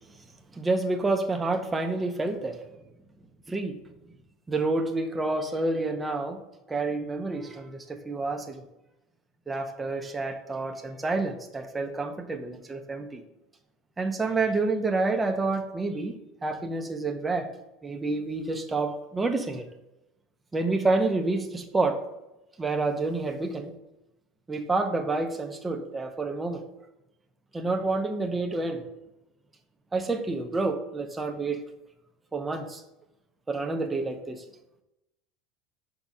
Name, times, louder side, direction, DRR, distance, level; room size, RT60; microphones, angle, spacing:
voice 1, 0.5-2.6 3.5-3.8 4.5-6.4 6.7-8.6 9.5-13.2 14.0-16.2 16.4-17.5 17.8-19.6 20.5-22.0 22.6-23.7 24.5-26.6 27.5-28.9 29.9-31.6 32.3-32.8 33.5-34.4, right 3 dB, 10° right, 5 dB, 0.8 m, -28 dB
6.0 x 4.1 x 6.0 m, 0.93 s
supercardioid pair, 145°, 0 cm